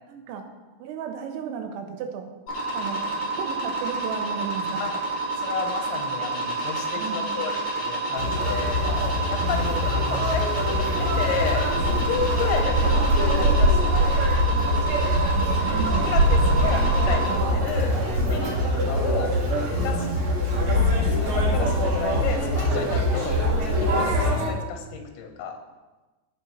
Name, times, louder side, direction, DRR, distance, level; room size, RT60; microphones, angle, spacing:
voice 1, 0.1-0.5 0.8-2.3 2.7-4.9 7.0-7.3 9.4-9.9 15.0-16.7 17.3-17.5 19.9-20.2, right 7 dB, 90° right, 5 dB, 3.4 m, -34 dB
sound 1, 2.5-17.3, right 3 dB, 40° left, 2.8 m, -29 dB
voice 2, 5.4-8.9 9.3-9.8 10.1-10.5 10.7-14.3 16.1-18.0 18.2-19.3 19.8-20.0 20.7-25.6, left 6 dB, 80° left, 3 dB, 3.4 m, -32 dB
Conversation, 8.1-24.5, equal, 65° right, 1.3 m, -23 dB
17.0 x 6.3 x 3.1 m, 1.2 s
omnidirectional pair, 5.2 m